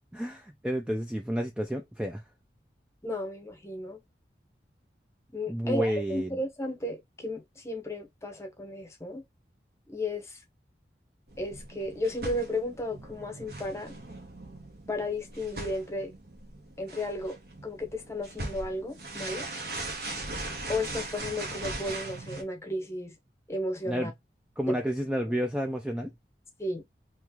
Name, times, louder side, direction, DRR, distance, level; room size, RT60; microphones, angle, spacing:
voice 1, 0.1-2.2 5.5-6.3 23.9-24.1 24.6-26.1, equal, 5° right, 0.3 m, -30 dB
voice 2, 3.0-4.0 5.3-9.2 9.9-10.4 11.4-13.9 14.9-16.1 16.8-17.4 17.6-19.5 20.7-23.1 23.5-24.1 24.7-24.8 25.3-25.4 26.6-26.8, left 1 dB, 15° left, 0.8 m, -34 dB
sound 1, 11.3-22.4, right 2 dB, 60° right, 1.1 m, -40 dB
3.1 x 3.0 x 3.6 m
head